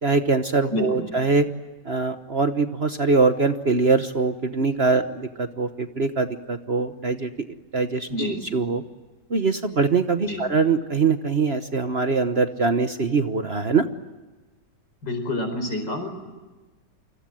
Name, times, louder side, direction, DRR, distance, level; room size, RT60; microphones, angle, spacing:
voice 1, 0.0-1.4 1.8-7.3 7.7-8.8 9.3-13.9, right 4 dB, 40° right, 8 dB, 1.2 m, -23 dB
voice 2, 0.7-1.0 8.1-8.4 10.3-10.4 15.0-16.1, left 1 dB, 80° left, 7 dB, 5.4 m, -28 dB
29.5 x 25.0 x 7.7 m, 1.2 s
omnidirectional pair, 1.9 m